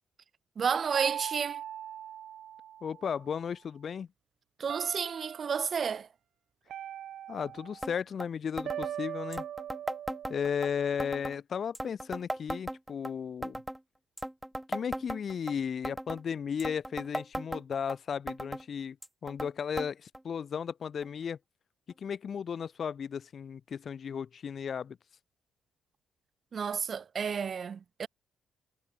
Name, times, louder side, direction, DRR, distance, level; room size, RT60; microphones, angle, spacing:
voice 1, 0.6-1.6 4.6-6.1 26.5-28.1, right 6 dB, 45° right, 3.0 m, -31 dB
sound 1, 0.9-3.3 4.7-5.7 6.7-8.0 8.6-11.0, right 10 dB, 70° right, 2.8 m, -41 dB
voice 2, 2.8-4.1 7.3-9.4 10.3-13.6 14.7-19.0 19.2-21.4 22.0-25.0, left 7 dB, 50° left, 1.4 m, -35 dB
sound 2, 7.8-7.9 8.2-8.3 8.6-8.9 9.3-10.7 11.0-11.4 11.7-13.1 13.4-13.8 14.2-15.5 15.8-16.2 16.6-18.0 18.3-18.6 19.0-19.5 19.8-19.9 20.1-20.2 21.0-21.1 21.9-22.0, right 1 dB, 5° right, 3.6 m, -37 dB
cardioid pair, 90°, 0 cm